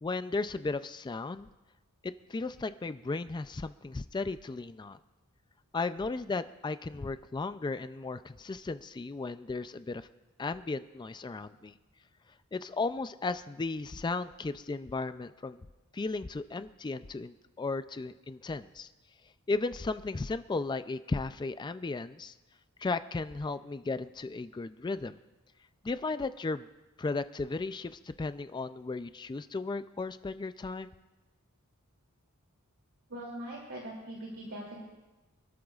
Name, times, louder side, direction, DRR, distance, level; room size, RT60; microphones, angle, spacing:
voice 1, 0.0-1.5 2.0-5.0 5.7-10.1 10.4-11.7 12.5-15.6 15.9-18.9 19.5-22.3 22.8-25.2 25.8-26.7 27.0-30.9, left 3 dB, 20° left, 12 dB, 0.3 m, -35 dB
voice 2, 33.1-34.8, right 1 dB, 65° right, -3 dB, 2.8 m, -41 dB
26.5 x 12.5 x 2.4 m, 1.1 s
head